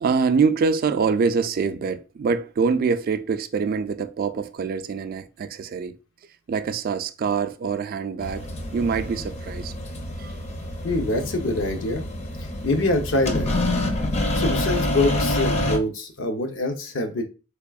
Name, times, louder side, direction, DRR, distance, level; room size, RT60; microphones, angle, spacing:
voice 1, 0.0-6.0 6.5-9.7 10.2-10.4, right 5 dB, 50° right, 0.3 m, -25 dB
sound 1, 8.2-15.8, left 1 dB, 35° left, 0.5 m, -27 dB
voice 2, 10.8-12.0 12.4-13.5 14.3-17.2, left 2 dB, 75° left, 0.7 m, -25 dB
3.5 x 3.3 x 2.3 m
head